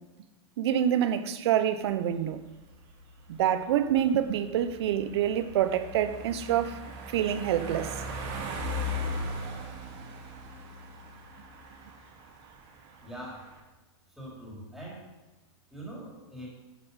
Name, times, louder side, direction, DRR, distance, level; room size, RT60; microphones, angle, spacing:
voice 1, 0.6-2.4 3.3-6.8 7.1-7.9, right 10 dB, 60° right, 1.0 m, -26 dB
sound 1, 1.9-13.6, left 1 dB, 40° right, 2.3 m, -39 dB
voice 2, 13.0-13.5 14.2-15.1 15.7-16.5, right 1 dB, ahead, 3.7 m, -42 dB
9.9 x 8.6 x 5.7 m
hypercardioid pair, 145°, 15 cm